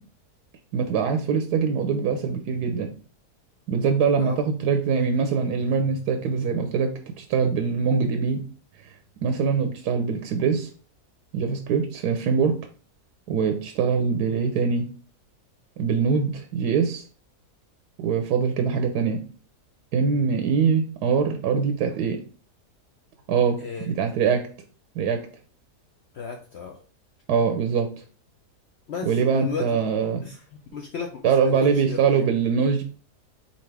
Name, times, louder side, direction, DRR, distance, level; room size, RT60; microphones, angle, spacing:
voice 1, 0.7-2.9 3.7-6.9 7.2-8.4 9.2-10.7 11.3-12.6 13.3-14.9 15.8-17.0 18.0-19.2 19.9-22.2 23.3-23.6 23.9-24.5 25.0-25.2 27.3-27.9 29.1-30.2 31.2-32.8, right 6 dB, 85° right, 6 dB, 1.2 m, -23 dB
voice 2, 26.1-26.8 28.9-29.8 30.2-30.4 30.7-32.2, left 6 dB, 75° left, 2 dB, 0.6 m, -34 dB
4.1 x 3.9 x 3.3 m, 0.40 s
omnidirectional pair, 1.7 m